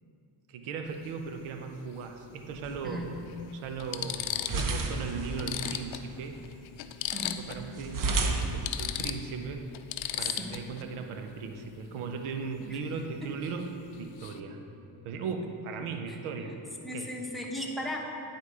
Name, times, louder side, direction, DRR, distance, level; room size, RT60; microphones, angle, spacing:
voice 1, 0.5-3.0 3.5-6.4 7.4-9.6 10.2-14.6 15.0-16.6 16.9-17.1, right 5 dB, 85° right, 5 dB, 0.8 m, -37 dB
sound 1, 0.9-1.1 2.5-2.6 3.3-3.4 3.8-4.7 5.1-5.2 5.4-7.7 8.0-8.1 8.4-10.8 13.4-13.6 13.9-14.4, left 12 dB, 70° left, 0.6 m, -36 dB
sound 2, 2.4-9.4, right 3 dB, 40° right, 0.9 m, -35 dB
voice 2, 2.8-3.1 7.1-7.4 10.2-10.6 12.7-12.8 16.1-16.5 16.8-18.0, left 1 dB, ahead, -2 dB, 1.2 m, -37 dB
9.9 x 4.2 x 4.8 m, 2.7 s
supercardioid pair, 70°, 50 cm